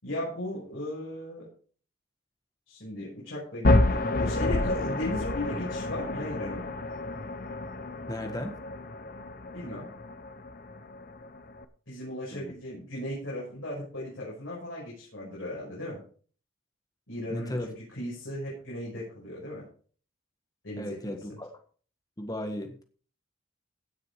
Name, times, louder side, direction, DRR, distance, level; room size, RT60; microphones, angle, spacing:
voice 1, 0.0-1.5 2.7-6.7 9.5-9.9 11.9-16.0 17.1-19.6 20.6-21.4, left 1 dB, 70° left, -6 dB, 6.2 m, -36 dB
sound 1, 3.6-11.6, left 2 dB, 45° left, 0.8 m, -29 dB
voice 2, 8.1-8.6 12.3-12.5 17.3-17.7 20.8-21.5 22.2-22.8, left 1 dB, 20° left, 6 dB, 1.6 m, -35 dB
16.0 x 6.6 x 4.8 m, 0.43 s
head